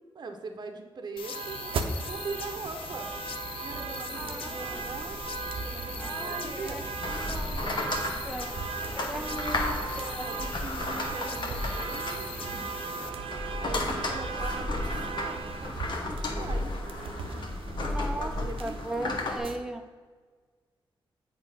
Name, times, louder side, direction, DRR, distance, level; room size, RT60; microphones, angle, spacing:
voice 1, 0.2-3.1 3.6-5.2 5.6-6.8 8.8-9.5 10.2-12.7 13.2-16.8 17.8-19.2, right 4 dB, 50° right, 4 dB, 0.8 m, -42 dB
sound 1, 1.2-13.1, left 7 dB, 80° left, 0.4 m, -42 dB
sound 2, 1.2-19.6, right 5 dB, 90° right, 0.6 m, -37 dB
sound 3, 2.0-19.4, left 2 dB, 55° left, 1.2 m, -35 dB
voice 2, 3.7-4.9 5.9-8.5 8.9-10.3 13.9-14.0 17.8-18.3 18.6-19.8, right 1 dB, 5° right, 6 dB, 0.7 m, -38 dB
8.0 x 3.2 x 5.5 m, 1.5 s
cardioid pair, 90°, 9 cm